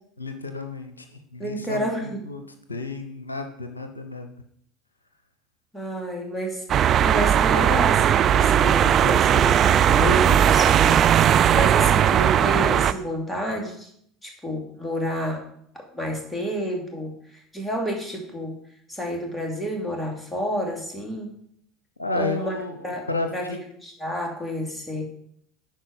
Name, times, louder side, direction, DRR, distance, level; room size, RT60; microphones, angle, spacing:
voice 1, 0.2-2.4 2.7-4.3 22.0-23.6, left 3 dB, 90° left, 6 dB, 0.7 m, -32 dB
voice 2, 1.4-2.2 5.7-6.6 7.0-11.0 11.3-13.9 14.2-15.4 15.9-18.5 18.9-21.3 22.2-22.5 22.8-23.0 23.3-23.5 23.8-25.0, equal, 10° left, 0 dB, 2.8 m, -29 dB
sound 1, 6.7-12.9, right 10 dB, 40° right, 0.4 m, -18 dB
11.0 x 4.5 x 5.3 m, 0.68 s
figure-of-eight pair, 70°, 0 cm